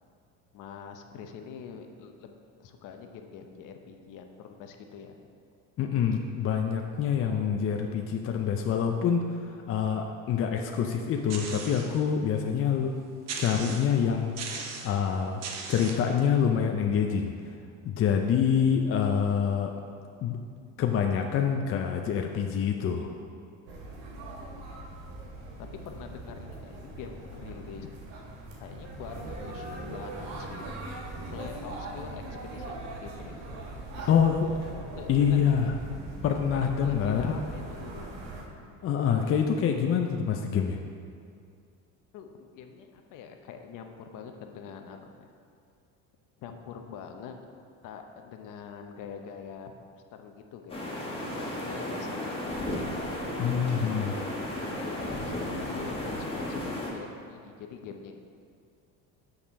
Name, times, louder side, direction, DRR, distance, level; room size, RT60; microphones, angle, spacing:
voice 1, 0.5-5.2 25.6-27.9 28.6-31.0 31.3-33.4 34.0-34.1 34.4-34.6 34.9-35.6 36.6-38.1 39.1-39.5 42.1-45.3 46.4-47.4 47.8-49.7 50.1-51.0 51.3-52.9 53.8-53.9 54.5-58.1, left 6 dB, 60° left, 5 dB, 0.8 m, -44 dB
voice 2, 5.8-9.4 9.7-12.9 13.4-14.3 14.8-15.4 15.7-17.3 17.8-19.7 20.2-20.4 20.8-23.1 34.1-34.5 35.1-35.7 36.2-37.3 38.8-40.8 53.4-54.1, left 7 dB, 40° left, 3 dB, 0.5 m, -26 dB
sound 1, 11.3-12.0 12.5-12.6 13.3-14.0 14.4-15.0 15.4-16.1, right 5 dB, 45° right, 1.0 m, -38 dB
sound 2, 23.7-38.4, right 2 dB, 80° right, 1.6 m, -41 dB
sound 3, 50.7-56.9, left 1 dB, 15° left, 1.5 m, -34 dB
6.5 x 6.0 x 5.4 m, 2.3 s
cardioid pair, 120°, 35 cm